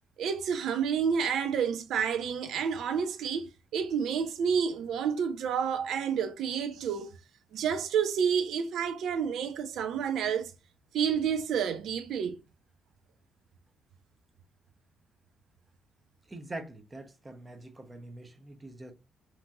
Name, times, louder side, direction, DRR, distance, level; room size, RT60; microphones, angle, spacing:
voice 1, 0.2-7.1 7.5-10.5 10.9-12.4, right 7 dB, 75° right, 0.4 m, -29 dB
voice 2, 16.3-18.9, right 2 dB, 20° right, 0.6 m, -44 dB
2.9 x 2.6 x 2.2 m
cardioid pair, 90°, 0 cm